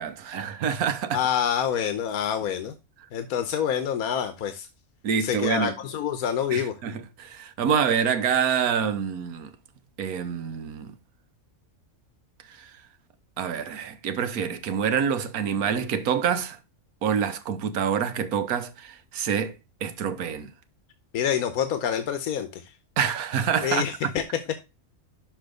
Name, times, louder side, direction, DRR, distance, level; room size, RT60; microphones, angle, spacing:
voice 1, 0.0-1.2 5.0-5.7 6.5-9.5 10.0-10.9 12.5-12.7 13.4-16.6 17.0-19.5 19.8-20.5 23.0-24.1, right 7 dB, 85° right, 1.3 m, -26 dB
voice 2, 1.1-2.7 3.1-4.7 5.2-6.7 21.1-22.6 23.6-24.2, left 8 dB, 85° left, 1.3 m, -27 dB
6.2 x 5.5 x 5.0 m
omnidirectional pair, 1.5 m